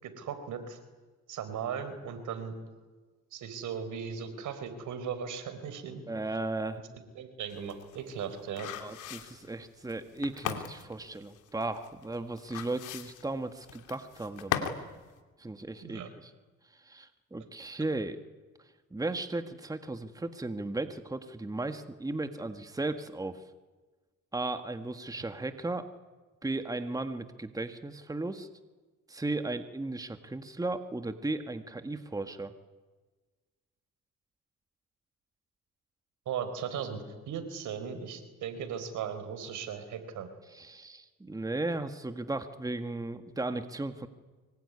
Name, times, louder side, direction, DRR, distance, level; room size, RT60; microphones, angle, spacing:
voice 1, 0.0-0.8 1.3-2.5 3.3-6.0 7.1-8.7 15.8-16.1 36.3-40.3, right 7 dB, 80° right, 9 dB, 4.5 m, -37 dB
voice 2, 6.1-6.8 8.8-14.7 15.4-16.3 16.7-18.2 18.9-23.4 24.3-25.9 26.4-28.5 29.1-32.5 40.5-44.1, right 2 dB, 10° right, 8 dB, 1.7 m, -36 dB
sound 1, 7.5-14.9 15.2-15.3, left 10 dB, 90° left, 2.8 m, -38 dB
24.5 x 23.0 x 9.8 m, 1.3 s
cardioid pair, 90°, 30 cm